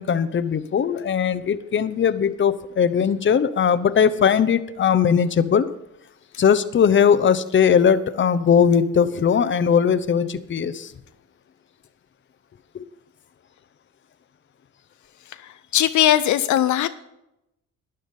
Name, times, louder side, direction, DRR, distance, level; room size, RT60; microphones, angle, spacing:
voice 1, 0.0-5.7 6.4-10.9 12.7-12.8, left 7 dB, 40° left, 14 dB, 0.8 m, -19 dB
voice 2, 15.2-16.9, left 12 dB, 70° left, 11 dB, 0.7 m, -20 dB
12.0 x 9.9 x 5.4 m, 0.85 s
cardioid pair, 90°, 30 cm